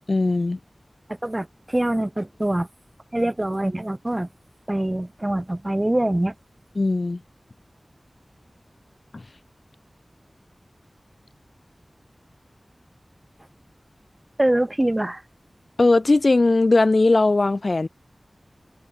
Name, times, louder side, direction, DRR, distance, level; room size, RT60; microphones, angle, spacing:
voice 1, 0.1-0.6 6.8-7.2 9.1-9.2 15.8-17.9, left 2 dB, 60° left, 1.0 m, -19 dB
voice 2, 1.2-2.7 3.1-4.3 4.7-6.3 14.4-15.2, right 1 dB, 25° right, 3.3 m, -24 dB
wide cardioid pair, 50°, 0 cm